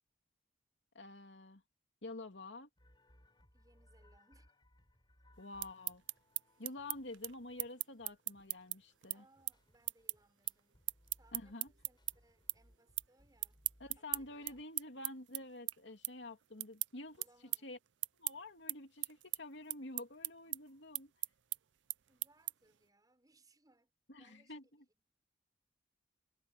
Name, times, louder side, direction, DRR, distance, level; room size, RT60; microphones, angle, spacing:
voice 1, 0.9-1.6 2.0-2.7 5.4-6.0 6.6-9.2 11.3-11.7 13.8-17.2 17.6-17.8 18.2-21.1 24.1-24.8, left 2 dB, 80° left, 2.7 m, -49 dB
sound 1, 2.8-14.6, left 1 dB, 25° left, 7.0 m, -68 dB
voice 2, 3.5-4.5 9.1-10.8 11.2-13.6 14.0-14.6 17.2-17.8 22.0-24.6 24.9-25.1, right 2 dB, 20° right, 6.7 m, -70 dB
sound 2, 5.4-12.1 12.5-13.1 13.4-22.8, right 19 dB, 80° right, 0.5 m, -40 dB
head